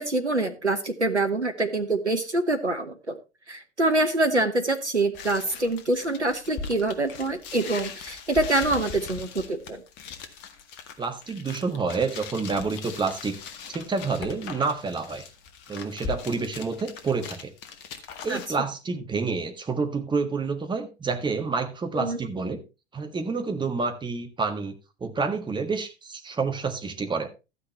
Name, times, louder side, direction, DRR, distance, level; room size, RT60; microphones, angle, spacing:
voice 1, 0.0-3.2 3.5-9.8 18.3-18.4 21.9-22.2, right 2 dB, 90° right, 1.1 m, -25 dB
sound 1, 5.1-18.5, left 5 dB, 40° left, 1.8 m, -40 dB
voice 2, 11.0-13.4 13.7-15.2 15.7-17.5 18.2-22.6 22.9-24.7 25.0-27.3, right 4 dB, 15° right, 1.6 m, -28 dB
13.0 x 9.5 x 3.1 m
figure-of-eight pair, 85°, 34 cm